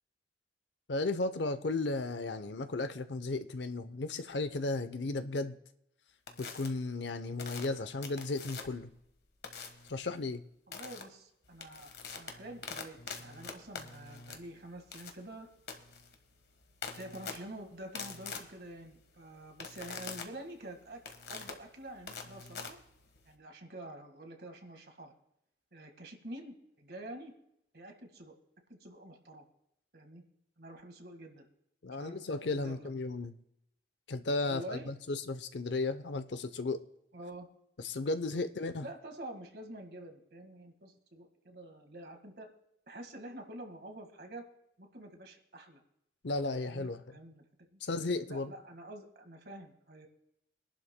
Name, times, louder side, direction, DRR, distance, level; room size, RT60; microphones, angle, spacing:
voice 1, 0.9-5.6 6.4-8.9 9.9-10.4 31.8-33.4 34.1-36.8 37.8-38.9 46.2-47.2 47.8-48.5, left 3 dB, 90° left, 10 dB, 0.7 m, -35 dB
sound 1, 6.3-6.7 7.4-8.9 9.4-9.9 10.7-11.0 11.4-23.3, left 5 dB, 70° left, 1.4 m, -45 dB
voice 2, 10.7-15.5 17.0-21.0 21.3-22.8 23.3-25.1 25.7-27.3 27.7-28.3 28.7-29.5 29.9-30.2 30.6-31.5 31.9-32.9 34.4-34.9 37.1-37.5 38.3-38.4 38.8-42.5 42.9-44.5 44.8-45.8 46.6-47.4 47.7-47.8 48.3-50.1, right 1 dB, 65° right, 4 dB, 1.8 m, -47 dB
24.5 x 11.5 x 2.2 m, 0.78 s
head